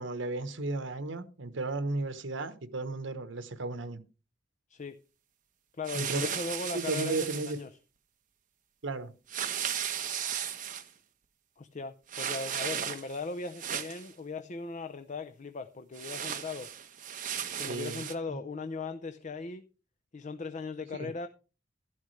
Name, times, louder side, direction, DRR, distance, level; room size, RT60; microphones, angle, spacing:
voice 1, 0.0-4.0 5.9-6.3 6.7-7.6 8.8-9.1 17.7-18.4 20.9-21.1, right 3 dB, 80° right, 1.1 m, -34 dB
voice 2, 5.7-7.7 11.6-16.7 17.6-19.6 20.1-21.3, left 4 dB, 40° left, 0.6 m, -38 dB
sound 1, 5.8-7.6 9.3-10.9 12.1-13.2 13.5-14.1 15.9-18.1, right 8 dB, 45° right, 1.1 m, -35 dB
12.0 x 11.5 x 3.2 m
head